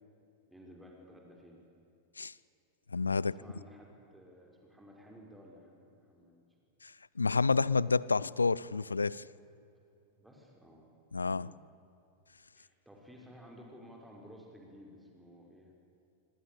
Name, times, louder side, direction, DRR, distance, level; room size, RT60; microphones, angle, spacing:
voice 1, 0.5-1.6 3.2-6.5 10.1-10.9 11.2-11.5 12.6-15.7, equal, 5° right, 0 dB, 5.2 m, -55 dB
voice 2, 2.9-3.3 6.8-6.9 7.2-9.2 11.1-11.5, left 4 dB, 80° left, 22 dB, 0.5 m, -29 dB
26.0 x 25.0 x 8.6 m, 2.7 s
figure-of-eight pair, 90°, 0 cm